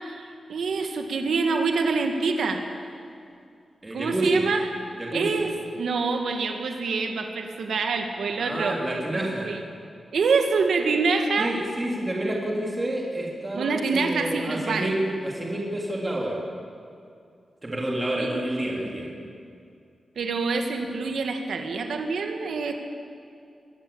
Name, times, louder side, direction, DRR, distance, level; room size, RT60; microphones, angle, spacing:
voice 1, 0.0-2.6 3.9-4.7 5.1-8.8 9.4-9.6 10.1-11.6 13.5-14.9 18.2-18.4 20.2-22.7, right 4 dB, 90° right, 4 dB, 2.0 m, -26 dB
voice 2, 3.8-4.4 5.0-5.3 8.4-9.5 11.4-16.4 17.6-19.1, right 1 dB, 20° right, -2 dB, 3.3 m, -29 dB
23.0 x 17.0 x 8.8 m, 2.4 s
wide cardioid pair, 150°, 0 cm